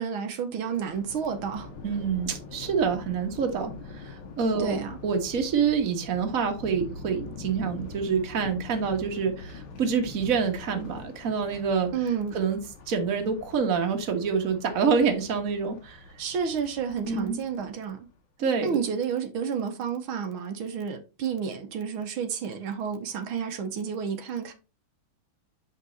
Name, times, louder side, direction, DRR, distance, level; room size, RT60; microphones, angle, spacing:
voice 1, 0.0-1.7 4.6-5.0 11.9-12.4 16.2-18.1 18.6-24.5, right 7 dB, 85° right, 1.9 m, -31 dB
Thunder, 0.6-18.0, left 3 dB, 80° left, 2.0 m, -44 dB
voice 2, 1.8-11.9 12.3-12.6 12.9-16.0 17.1-17.4 18.4-18.8, right 6 dB, 45° right, 1.6 m, -27 dB
7.4 x 5.5 x 4.0 m
omnidirectional pair, 2.2 m